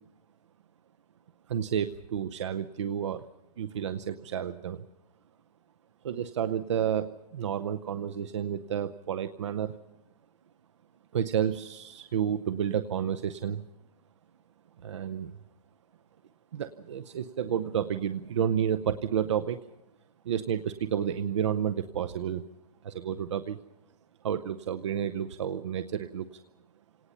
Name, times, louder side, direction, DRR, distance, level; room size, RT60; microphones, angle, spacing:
voice 1, 1.5-3.2 3.6-4.8 6.0-9.8 11.1-13.6 14.8-15.3 16.5-19.6 20.2-22.4 22.8-23.6 24.2-26.3, right 9 dB, 50° right, 12 dB, 0.7 m, -30 dB
29.0 x 18.5 x 5.7 m, 0.90 s
hypercardioid pair, 180°, 20 cm